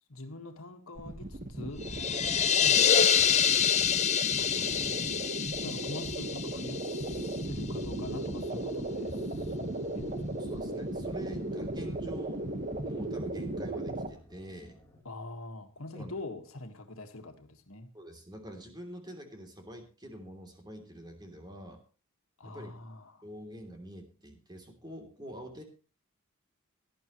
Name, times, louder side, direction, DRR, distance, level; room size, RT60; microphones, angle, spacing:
voice 1, 0.1-1.9 2.5-3.1 4.4-5.2 5.6-10.5 15.0-17.9 22.4-23.2, left 2 dB, 70° left, 1.8 m, -44 dB
sound 1, 0.9-14.1, right 1 dB, 40° right, 1.5 m, -36 dB
sound 2, 1.8-7.5, left 8 dB, 30° left, 0.8 m, -27 dB
voice 2, 4.4-5.2 10.4-12.4 12.8-14.8 15.9-16.1 17.9-21.8 22.4-22.7 23.2-25.6, equal, 20° right, 3.2 m, -46 dB
sound 3, 7.6-15.0, equal, 15° left, 2.7 m, -54 dB
17.5 x 11.5 x 3.1 m
head